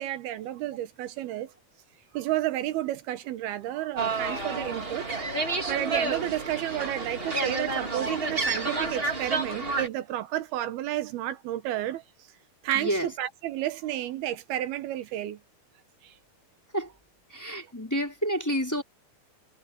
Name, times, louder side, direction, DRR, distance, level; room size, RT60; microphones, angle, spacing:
voice 1, 0.0-1.5 2.1-5.1 5.7-12.0 12.6-15.4 16.0-16.1, right 13 dB, 85° right, 3.2 m, -31 dB
sound 1, 4.0-9.9, right 3 dB, 25° right, 1.5 m, -30 dB
voice 2, 12.7-13.1 16.7-16.9 17.3-18.8, equal, 5° left, 4.0 m, -29 dB
omnidirectional pair, 4.3 m